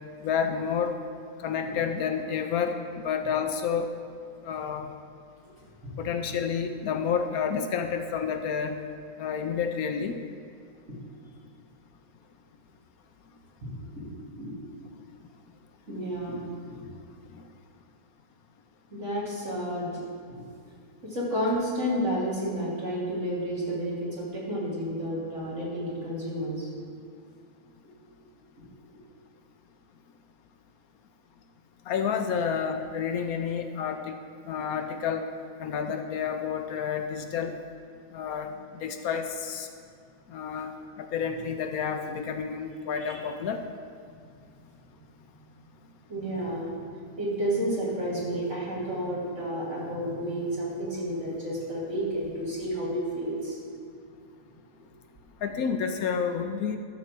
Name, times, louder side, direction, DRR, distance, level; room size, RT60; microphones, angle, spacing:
voice 1, 0.2-1.0 1.4-2.8 3.0-3.9 4.4-4.9 6.0-8.8 9.2-10.1 31.9-34.2 34.5-35.2 35.6-37.5 38.1-38.5 38.8-39.7 40.3-40.7 41.0-43.6 55.4-56.8, left 7 dB, 70° left, 6 dB, 1.0 m, -29 dB
voice 2, 13.6-14.5 15.9-16.9 18.9-20.0 20.3-20.4 21.0-26.7 28.6-28.7 43.0-43.2 46.1-46.7 47.2-53.6 54.7-54.8, equal, 50° right, -6 dB, 2.9 m, -31 dB
13.0 x 4.3 x 7.4 m, 2.2 s
omnidirectional pair, 1.7 m